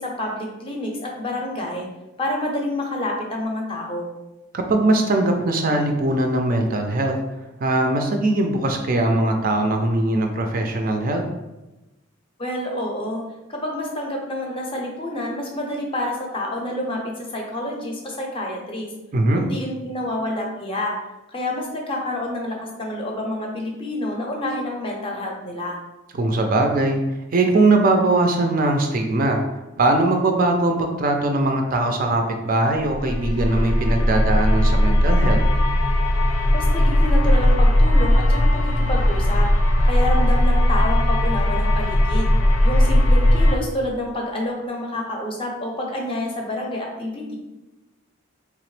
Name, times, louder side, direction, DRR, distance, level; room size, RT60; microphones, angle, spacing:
voice 1, 0.0-1.9 2.2-4.1 12.4-13.2 13.5-18.9 19.3-20.9 21.3-25.8 36.5-39.5 39.8-42.3 42.6-47.4, left 1 dB, 25° left, 0 dB, 0.6 m, -28 dB
voice 2, 4.5-7.2 7.6-11.2 19.1-19.4 26.1-27.0 27.3-29.4 29.8-35.4, right 2 dB, 40° right, 3 dB, 0.4 m, -20 dB
sound 1, 32.9-43.6, left 1 dB, 90° left, 0.6 m, -18 dB
3.5 x 2.9 x 3.1 m, 1.0 s
head